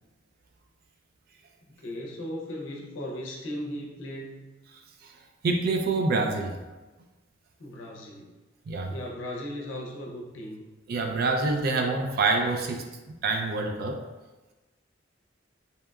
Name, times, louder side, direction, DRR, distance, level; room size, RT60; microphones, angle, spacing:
voice 1, 1.8-4.5 7.6-8.3 8.9-10.6, left 1 dB, 80° left, -2 dB, 0.5 m, -37 dB
voice 2, 4.7-5.2 5.4-6.6 8.7-8.9 10.9-14.0, right 3 dB, 50° right, 3 dB, 0.3 m, -27 dB
2.8 x 2.2 x 2.2 m, 1.1 s
head